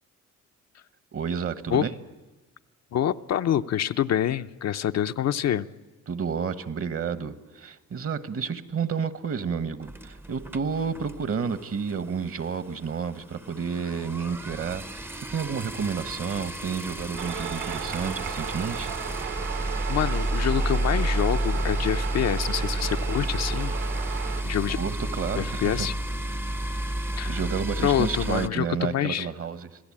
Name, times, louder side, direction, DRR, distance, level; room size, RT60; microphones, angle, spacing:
voice 1, 1.1-1.9 6.1-18.9 24.8-25.9 27.3-29.8, right 6 dB, 50° right, 1.2 m, -30 dB
voice 2, 2.9-5.7 19.6-23.8 24.4-24.8 25.4-25.9 27.2-27.4 27.8-29.3, left 10 dB, 60° left, 0.7 m, -26 dB
sound 1, 9.8-11.6 11.9-12.1 12.4-12.5 12.7-28.5, right 1 dB, 5° right, 0.7 m, -31 dB
sound 2, 17.2-24.4, right 9 dB, 80° right, 2.5 m, -35 dB
26.0 x 16.5 x 8.7 m
cardioid pair, 90°, 30 cm